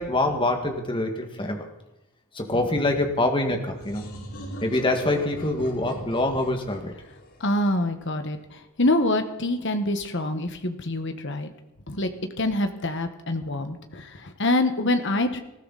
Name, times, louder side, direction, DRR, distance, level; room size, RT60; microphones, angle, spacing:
voice 1, 0.0-1.7 2.3-4.1 4.6-6.9, left 2 dB, 25° left, 4 dB, 2.0 m, -25 dB
sound 1, 3.7-8.3, equal, 75° left, 5.1 m, -41 dB
voice 2, 7.4-8.4 8.8-11.5 11.9-12.1 12.4-15.4, left 1 dB, 55° left, 7 dB, 1.6 m, -25 dB
20.0 x 15.0 x 4.2 m, 0.96 s
head